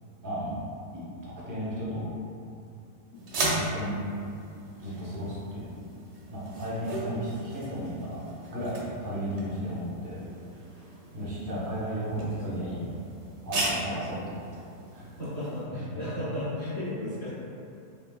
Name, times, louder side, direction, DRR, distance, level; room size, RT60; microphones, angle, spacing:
voice 1, 0.2-0.6 1.2-2.1 3.3-4.0 4.8-5.7 6.3-8.2 8.5-10.2 11.1-12.8 13.4-14.2 14.5-14.6 14.9-15.1, equal, 25° right, -9 dB, 0.4 m, -34 dB
sound 1, 3.1-15.6, right 2 dB, 65° right, 0.7 m, -37 dB
voice 2, 12.4-12.8 13.8-14.0 15.2-17.3, left 1 dB, 65° left, -11 dB, 0.3 m, -35 dB
3.1 x 3.1 x 2.3 m, 2.5 s
omnidirectional pair, 1.7 m